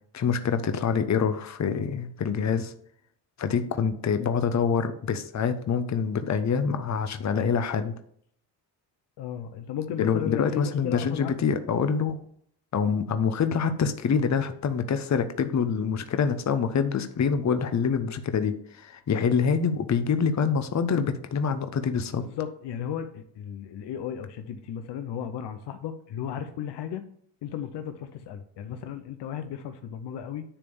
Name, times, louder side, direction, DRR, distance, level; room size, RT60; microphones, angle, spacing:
voice 1, 0.1-2.7 3.4-7.9 10.0-12.2 12.7-22.2, left 6 dB, 40° left, 9 dB, 0.9 m, -26 dB
voice 2, 9.2-11.4 22.4-27.0 27.4-30.4, left 9 dB, 65° left, 8 dB, 0.8 m, -35 dB
10.0 x 3.5 x 7.0 m, 0.64 s
supercardioid pair, 65°, 44 cm